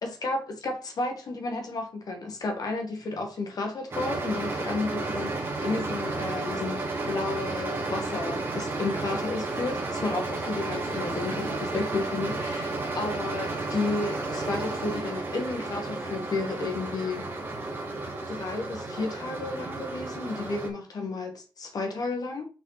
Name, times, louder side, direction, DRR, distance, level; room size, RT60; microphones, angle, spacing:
voice 1, 0.0-17.3 18.3-22.5, left 3 dB, 50° left, 1.9 m, -32 dB
sound 1, 3.9-20.7, right 2 dB, 25° right, 2.0 m, -32 dB
5.8 x 5.7 x 4.2 m
wide cardioid pair, 175°, 9 cm